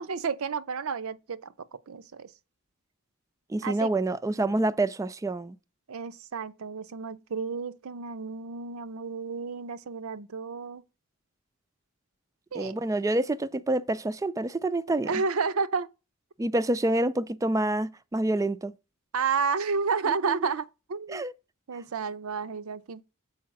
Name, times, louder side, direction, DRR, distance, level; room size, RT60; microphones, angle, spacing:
voice 1, 0.0-2.3 3.6-3.9 5.9-10.8 12.5-12.8 14.9-15.9 19.1-21.2 21.7-23.0, right 5 dB, 90° right, 0.6 m, -31 dB
voice 2, 3.5-5.6 12.5-15.1 16.4-18.7 20.1-20.4 21.1-21.3, right 2 dB, 15° right, 0.3 m, -27 dB
7.3 x 4.7 x 5.7 m
head